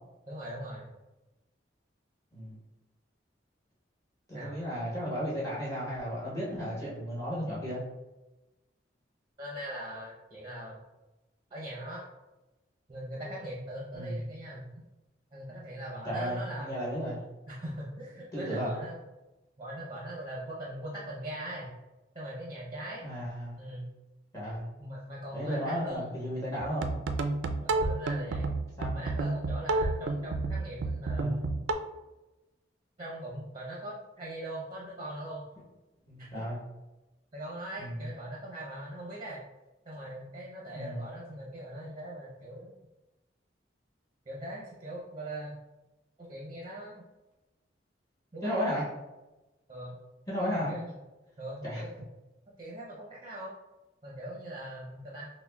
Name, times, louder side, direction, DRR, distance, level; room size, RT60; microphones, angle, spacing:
voice 1, 0.3-0.9 4.3-4.6 9.4-10.8 11.5-12.1 12.9-14.7 15.3-16.8 17.5-19.0 19.6-21.7 22.1-23.1 23.6-23.9 24.8-26.1 27.6-28.5 28.9-31.4 33.0-35.5 36.2-36.4 37.3-39.4 39.9-42.7 44.3-45.6 46.2-47.0 48.3-48.8 49.7-49.9 50.7-51.0 51.4-51.9 52.6-53.5 54.0-55.3, right 1 dB, 25° right, -3 dB, 0.6 m, -41 dB
voice 2, 2.3-2.6 4.3-7.8 13.9-14.2 16.0-17.2 18.3-18.7 23.0-23.6 24.3-24.6 25.3-26.9 28.8-29.0 31.1-31.4 36.1-36.6 37.8-37.9 40.7-41.0 48.4-48.8 50.3-50.7 51.6-51.8, equal, 20° left, -8 dB, 1.0 m, -34 dB
sound 1, 26.6-31.7, right 3 dB, 90° right, 0.4 m, -30 dB
5.9 x 2.1 x 2.2 m, 1.0 s
head